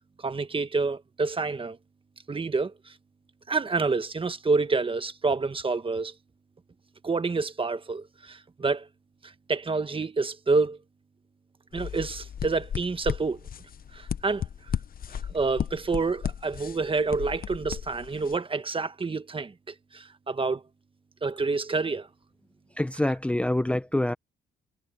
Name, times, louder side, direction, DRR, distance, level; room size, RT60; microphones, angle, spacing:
voice 1, 0.2-1.8 2.3-2.7 3.5-6.1 7.0-8.9 9.5-10.8 11.7-13.4 13.9-14.4 15.3-20.6 21.2-22.1, right 4 dB, 25° right, 1.4 m, -28 dB
sound 1, 11.7-18.4, left 8 dB, 45° left, 0.9 m, -35 dB
voice 2, 22.8-24.1, left 1 dB, 5° left, 0.8 m, -26 dB
cardioid pair, 90°, 20 cm